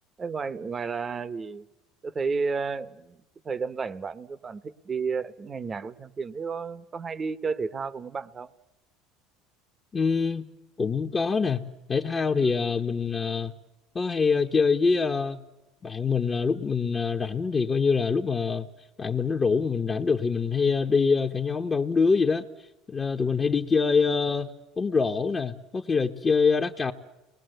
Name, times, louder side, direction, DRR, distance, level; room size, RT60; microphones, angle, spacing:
voice 1, 0.2-1.6 2.0-3.2 3.4-8.5, right 5 dB, 25° right, 1.0 m, -32 dB
voice 2, 9.9-10.5 10.8-11.6 11.9-13.5 13.9-15.4 15.8-18.7 19.0-22.5 22.9-26.9, left 5 dB, 25° left, 1.0 m, -25 dB
30.0 x 20.5 x 7.9 m
supercardioid pair, 110°, 0 cm